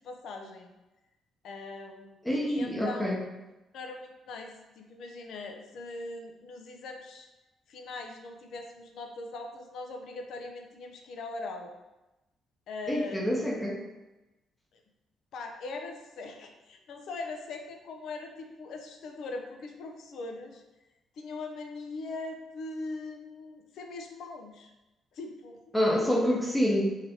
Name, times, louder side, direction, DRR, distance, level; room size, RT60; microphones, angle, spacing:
voice 1, 0.0-0.7 1.4-3.2 3.7-7.3 7.7-11.7 12.7-13.3 15.3-20.6 21.2-24.7 25.1-25.6, left 3 dB, 75° left, 3 dB, 0.5 m, -41 dB
voice 2, 2.3-3.2 12.9-13.8 25.7-26.9, equal, 10° left, -2 dB, 0.7 m, -27 dB
3.9 x 3.2 x 2.8 m, 1.0 s
cardioid pair, 90°, 0 cm